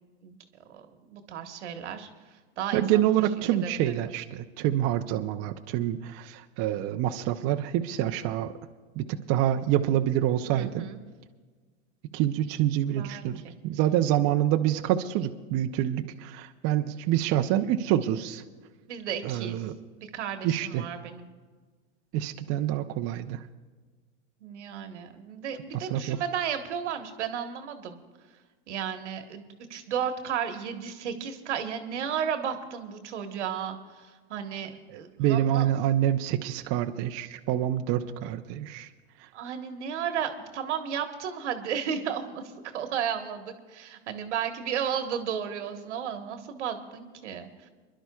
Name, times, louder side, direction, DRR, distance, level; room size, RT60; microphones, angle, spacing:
voice 1, 0.7-2.1 2.6-3.0 3.5-3.9 10.5-11.0 12.8-13.5 18.9-19.6 20.0-21.3 24.4-28.0 28.7-29.4 29.7-35.7 39.3-47.7, right 8 dB, 85° right, 7 dB, 1.4 m, -34 dB
voice 2, 2.7-8.6 9.0-10.8 12.1-18.4 19.2-19.7 20.4-20.9 22.1-23.4 25.7-26.2 35.2-38.9, right 12 dB, 45° right, 6 dB, 0.7 m, -27 dB
28.5 x 11.5 x 2.3 m, 1.4 s
hypercardioid pair, 120°, 34 cm